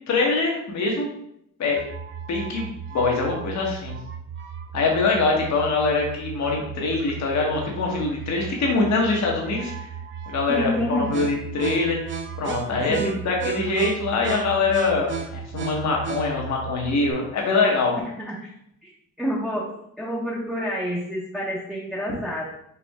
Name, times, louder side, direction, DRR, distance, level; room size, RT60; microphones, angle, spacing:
voice 1, 0.1-1.1 1.6-1.8 2.3-3.9 4.7-9.7 10.3-12.1 12.4-13.0 13.2-17.9, left 3 dB, 65° left, -1 dB, 1.4 m, -23 dB
sound 1, 1.8-17.1, right 7 dB, 40° right, 0.6 m, -35 dB
voice 2, 10.5-11.2 12.8-13.1 18.2-18.5 18.8-18.9 19.2-19.7 20.0-22.4, equal, ahead, -7 dB, 1.1 m, -28 dB
4.8 x 2.6 x 3.5 m, 0.74 s
cardioid pair, 90°, 30 cm